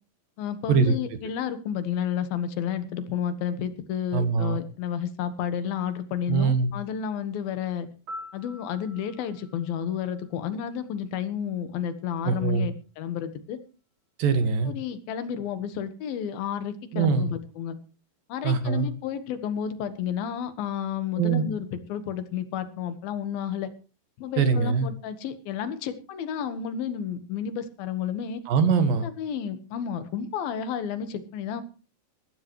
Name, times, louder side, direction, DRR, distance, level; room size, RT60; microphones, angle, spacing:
voice 1, 0.4-7.9 8.3-13.6 14.6-17.8 18.3-23.7 24.2-28.4 29.0-31.6, left 8 dB, 85° left, 11 dB, 3.2 m, -31 dB
voice 2, 4.1-4.6 6.3-6.7 12.2-12.7 14.2-14.7 16.9-17.3 18.4-18.9 21.2-21.4 24.4-24.9 28.5-29.1, right 5 dB, 75° right, 9 dB, 3.3 m, -22 dB
Piano, 8.1-11.0 19.1-19.3, left 1 dB, 35° right, 4.1 m, -45 dB
20.0 x 14.5 x 3.1 m, 0.34 s
omnidirectional pair, 4.1 m